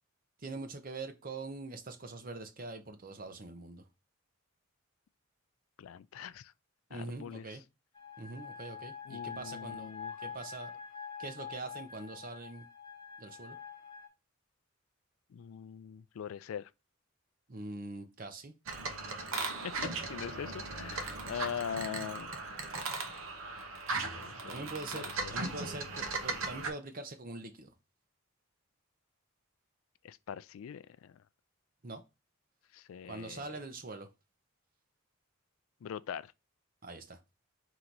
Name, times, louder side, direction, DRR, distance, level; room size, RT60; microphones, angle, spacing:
voice 1, 0.4-3.8 6.9-7.6 8.2-9.9 10.2-10.7 11.2-12.6 13.2-13.6 17.5-18.5 24.5-27.7 31.8-32.0 33.1-34.1 36.8-37.2, right 2 dB, 40° right, 0.7 m, -43 dB
voice 2, 5.8-6.5 6.9-7.6 9.1-10.2 15.3-16.7 19.3-19.7 20.0-22.3 24.1-24.6 24.9-25.4 30.0-31.2 32.7-33.4 35.8-36.3, left 8 dB, 80° left, 0.3 m, -42 dB
sound 1, 7.9-14.1, left 6 dB, 25° left, 0.8 m, -45 dB
sound 2, 18.7-26.7, right 3 dB, 75° right, 0.9 m, -38 dB
4.5 x 2.9 x 3.9 m
head